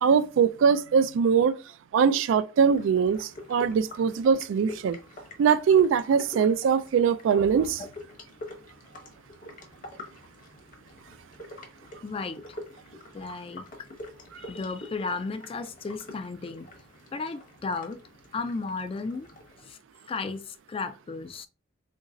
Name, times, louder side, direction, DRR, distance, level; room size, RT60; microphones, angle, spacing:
voice 1, 0.0-1.6 1.9-5.0 5.4-7.8, right 6 dB, 80° right, 0.3 m, -22 dB
sound 1, 2.7-19.7, left 1 dB, 45° left, 0.9 m, -46 dB
voice 2, 12.0-12.4 13.1-13.7 14.4-16.7 17.1-18.0 18.3-19.3 19.7-19.8 20.1-21.5, left 4 dB, 30° left, 0.3 m, -34 dB
2.9 x 2.7 x 3.7 m
head